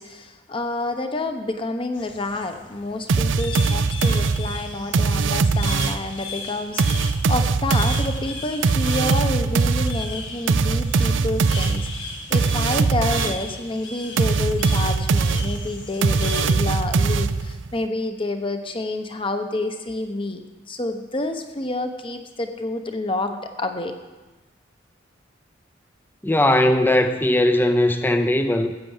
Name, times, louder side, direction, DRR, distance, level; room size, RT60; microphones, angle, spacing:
voice 1, 0.0-23.9, left 2 dB, 30° left, 7 dB, 1.0 m, -29 dB
sound 1, 1.9-16.5, left 4 dB, 70° left, 1.7 m, -37 dB
sound 2, 3.1-6.1 6.8-13.5 14.2-17.7, right 4 dB, 75° right, 0.5 m, -21 dB
voice 2, 26.2-28.7, left 1 dB, 10° left, 7 dB, 0.6 m, -19 dB
14.0 x 7.7 x 7.3 m, 1.2 s
head